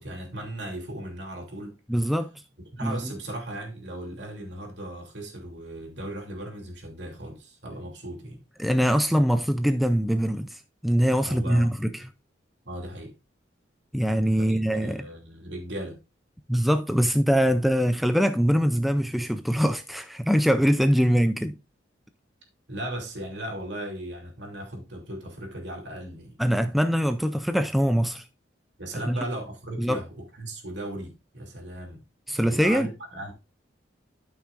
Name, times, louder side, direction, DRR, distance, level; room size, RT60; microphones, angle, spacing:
voice 1, 0.0-1.8 2.7-8.4 11.2-11.7 12.6-13.1 14.4-16.0 22.7-26.4 28.8-32.0 32.4-33.3, right 1 dB, 70° right, 2.8 m, -37 dB
voice 2, 1.9-2.3 2.8-3.1 8.6-11.9 13.9-15.0 16.5-21.5 26.4-28.2 29.1-29.2 29.8-30.0 32.3-32.9, equal, ahead, 0.4 m, -23 dB
12.5 x 5.8 x 2.5 m
head